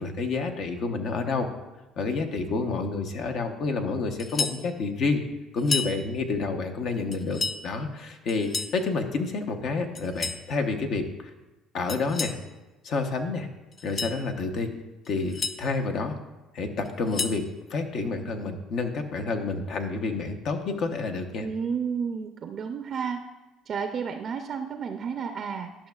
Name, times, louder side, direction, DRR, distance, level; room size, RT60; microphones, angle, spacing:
voice 1, 0.0-1.5 2.0-5.2 5.5-11.1 11.7-12.4 12.8-13.5 13.8-14.7 15.1-16.1 16.5-21.5, left 3 dB, 60° left, 5 dB, 0.8 m, -29 dB
sound 1, 4.2-4.6 5.6-6.0 7.1-7.6 8.3-8.8 9.9-10.4 11.9-12.4 13.7-14.2 15.0-15.6 16.8-17.4, left 4 dB, 35° left, 0.5 m, -31 dB
voice 2, 21.4-23.2 23.7-25.9, right 6 dB, 50° right, 6 dB, 0.4 m, -31 dB
11.5 x 5.8 x 2.3 m, 1.1 s
supercardioid pair, 85°, 0 cm